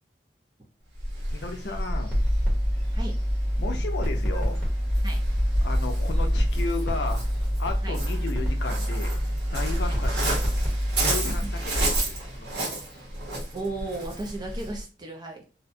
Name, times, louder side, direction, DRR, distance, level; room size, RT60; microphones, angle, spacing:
Waves surf, 0.9-14.8, right 1 dB, 80° right, 1.1 m, -30 dB
voice 1, 1.3-2.2 3.6-4.6 5.6-7.3 7.6-9.2 9.5-10.1 11.0-12.8, left 3 dB, 75° left, 5 dB, 0.5 m, -34 dB
sound 1, 2.1-12.3, equal, 5° right, 0.9 m, -28 dB
sound 2, 4.1-10.0, right 2 dB, 20° left, 0.7 m, -54 dB
voice 2, 13.5-15.4, right 2 dB, 25° right, 0 dB, 0.5 m, -35 dB
2.7 x 2.2 x 2.6 m, 0.35 s
head